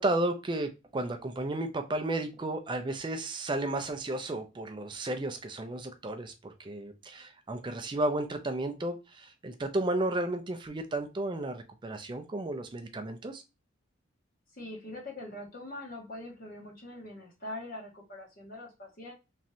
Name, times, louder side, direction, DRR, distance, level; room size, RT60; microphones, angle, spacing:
voice 1, 0.0-13.4, right 2 dB, 25° right, 7 dB, 0.4 m, -33 dB
voice 2, 14.5-19.1, left 1 dB, 45° left, -1 dB, 1.0 m, -43 dB
3.1 x 2.5 x 2.7 m, 0.27 s
head